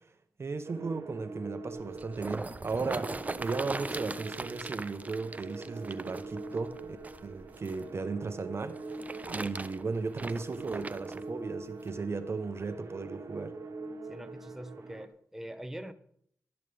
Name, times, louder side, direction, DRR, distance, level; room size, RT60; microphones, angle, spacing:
voice 1, 0.4-7.0 7.2-9.0 9.3-13.6, right 4 dB, 50° right, 1.0 m, -36 dB
sound 1, 0.6-15.1, right 3 dB, 70° right, 1.4 m, -44 dB
sound 2, 1.7-7.8 8.7-11.2 11.9-12.0, right 3 dB, 30° right, 0.6 m, -40 dB
voice 2, 14.1-15.9, right 1 dB, 5° right, 1.1 m, -43 dB
12.0 x 11.0 x 3.4 m
cardioid pair, 60°, 6 cm